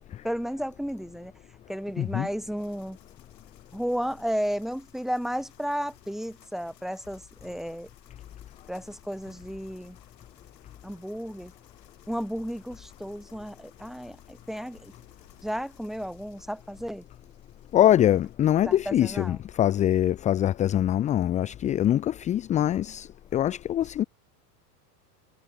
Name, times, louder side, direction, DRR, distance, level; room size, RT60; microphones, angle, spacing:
voice 1, 0.2-1.3 1.7-3.0 3.7-7.9 8.7-10.0 10.8-11.5 12.1-14.9 15.4-17.0 18.6-19.4, equal, ahead, 3.3 m, -33 dB
voice 2, 2.0-2.3 17.7-24.0, left 11 dB, 15° left, 0.3 m, -23 dB
sound 1, 2.6-18.4, left 12 dB, 90° left, 7.7 m, -59 dB
supercardioid pair, 115°, 48 cm